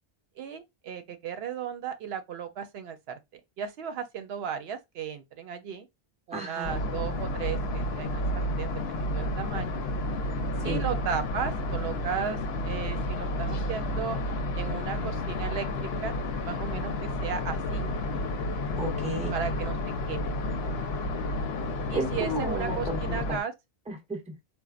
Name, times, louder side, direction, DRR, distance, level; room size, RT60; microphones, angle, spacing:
voice 1, 0.4-3.2 3.6-5.9 6.3-9.8 10.6-14.2 14.6-16.1 16.4-17.9 19.3-19.8 20.1-20.4 21.9-23.5, right 7 dB, 80° right, 0.8 m, -35 dB
voice 2, 6.3-6.7 10.6-10.9 18.7-19.4 21.9-23.4 23.9-24.4, right 1 dB, 10° right, 0.6 m, -33 dB
sound 1, 6.6-23.4, left 1 dB, 80° left, 0.8 m, -31 dB
4.0 x 2.2 x 2.4 m
omnidirectional pair, 1.0 m